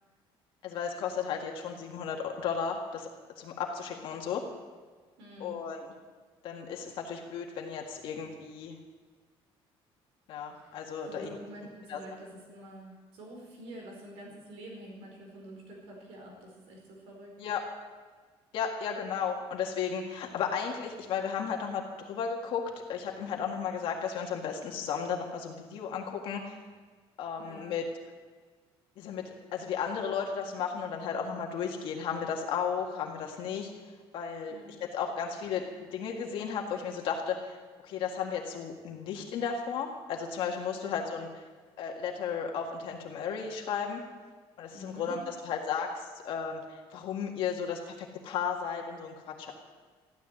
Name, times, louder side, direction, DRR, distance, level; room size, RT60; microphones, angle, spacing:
voice 1, 0.6-3.1 3.4-4.5 5.4-5.9 6.4-8.8 10.3-11.3 11.9-12.0 17.4-17.6 18.5-26.6 27.2-27.9 29.0-33.7 34.1-35.7 35.9-37.6 37.8-41.3 41.8-44.0 44.6-49.5, left 7 dB, 60° left, 1 dB, 1.8 m, -34 dB
voice 2, 5.2-5.6 10.5-10.8 11.0-17.3 27.4-27.8 34.5-34.7 40.7-41.1 44.7-45.2, right 1 dB, 80° right, 0 dB, 4.9 m, -47 dB
14.5 x 12.5 x 7.7 m, 1.5 s
cardioid pair, 180°, 10 cm